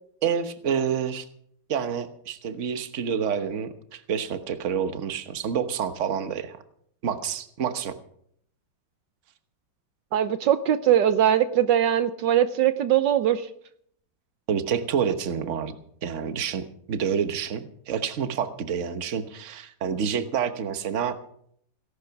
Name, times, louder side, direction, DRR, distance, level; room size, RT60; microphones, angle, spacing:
voice 1, 0.2-1.3 1.7-6.6 7.0-8.0 14.5-15.8 16.0-21.2, right 7 dB, 45° right, 10 dB, 1.3 m, -28 dB
voice 2, 10.1-13.5, right 10 dB, 70° right, 11 dB, 1.3 m, -21 dB
17.5 x 11.5 x 5.8 m, 0.67 s
omnidirectional pair, 2.1 m